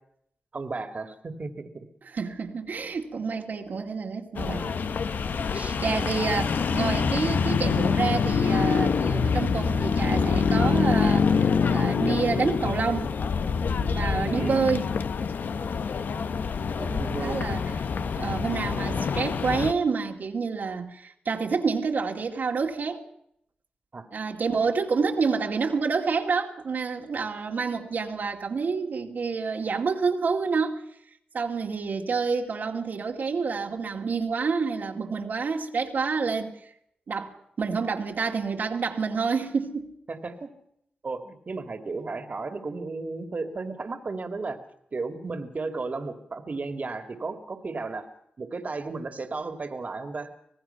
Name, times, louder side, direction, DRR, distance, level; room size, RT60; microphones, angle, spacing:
voice 1, 0.5-1.9 2.3-2.4 5.5-5.8 6.2-6.5 14.3-14.8 17.0-17.6 23.9-24.1 40.1-40.5 41.0-44.6 44.9-48.1 48.4-50.3, right 3 dB, 55° right, 2.5 m, -34 dB
voice 2, 2.1-4.8 5.4-11.3 11.7-13.1 13.8-14.9 16.8-17.7 18.2-23.0 24.1-30.8 31.3-36.7 37.1-39.9, right 5 dB, 75° right, 2.4 m, -28 dB
sound 1, 4.4-19.7, left 5 dB, 75° left, 1.0 m, -25 dB
26.0 x 18.5 x 5.9 m
cardioid pair, 45°, 3 cm